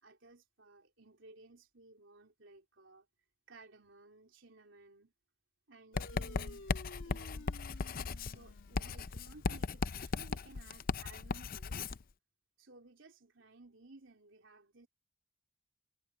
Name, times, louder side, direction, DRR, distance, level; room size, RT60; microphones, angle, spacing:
voice 1, 0.0-3.1 3.5-5.1 5.7-7.5 8.3-11.9 12.6-14.9, right 2 dB, 75° right, 4.0 m, -58 dB
sound 1, 5.9-10.8, left 2 dB, 75° left, 1.6 m, -55 dB
Writing, 6.0-12.0, left 4 dB, 50° left, 0.5 m, -37 dB
head